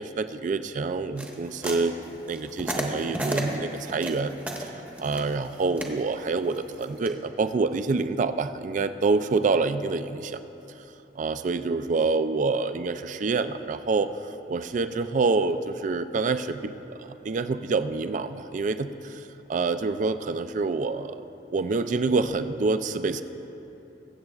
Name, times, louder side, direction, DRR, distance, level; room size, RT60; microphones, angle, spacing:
voice 1, 0.0-1.9 2.3-4.7 5.0-10.4 11.2-14.1 14.5-21.2 21.5-23.2, right 4 dB, 45° right, 11 dB, 0.3 m, -27 dB
sound 1, 1.2-7.1, right 1 dB, 10° right, 0.9 m, -33 dB
22.0 x 7.7 x 2.4 m, 3.0 s
head